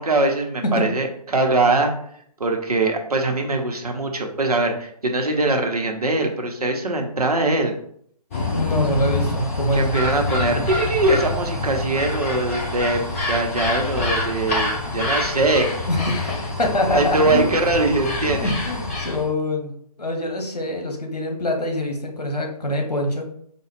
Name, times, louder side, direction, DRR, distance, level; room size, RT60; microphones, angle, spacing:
voice 1, 0.0-1.9 2.4-7.7 9.7-13.0 13.3-15.9 16.9-18.5, right 2 dB, 70° right, 3 dB, 0.8 m, -22 dB
sound 1, 8.3-19.3, left 2 dB, 20° left, 0.6 m, -26 dB
voice 2, 8.5-9.9 15.9-17.5 18.2-19.7 20.0-23.3, left 1 dB, 75° left, 2 dB, 1.0 m, -24 dB
4.9 x 2.2 x 3.2 m, 0.65 s
figure-of-eight pair, 140°, 20 cm